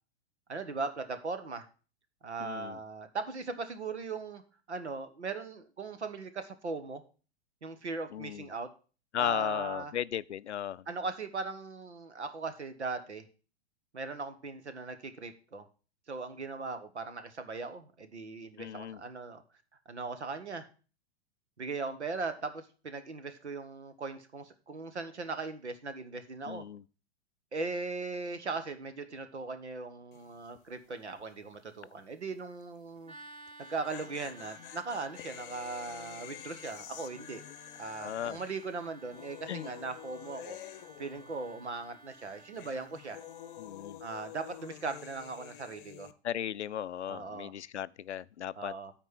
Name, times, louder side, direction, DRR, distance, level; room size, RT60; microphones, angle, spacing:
voice 1, 0.5-1.6 2.2-4.4 4.7-7.0 7.6-8.7 9.2-9.9 10.9-13.2 13.9-15.6 16.1-19.4 19.8-20.7 21.6-26.6 27.5-33.1 33.6-37.4 37.8-40.6 41.0-43.2 44.0-46.1 47.1-47.5 48.6-48.9, right 4 dB, 85° right, 1.4 m, -39 dB
voice 2, 2.4-2.8 8.1-8.5 9.1-10.9 18.6-19.0 26.5-26.8 38.0-38.4 39.5-39.7 43.6-44.0 46.2-48.7, left 10 dB, 85° left, 0.5 m, -36 dB
sound 1, 30.1-30.5 30.7-30.8 33.5-41.8 42.1-46.1, left 12 dB, 50° left, 0.8 m, -49 dB
sound 2, 33.0-43.7, right 2 dB, 20° right, 1.3 m, -55 dB
9.2 x 4.4 x 7.4 m
figure-of-eight pair, 110°, 33 cm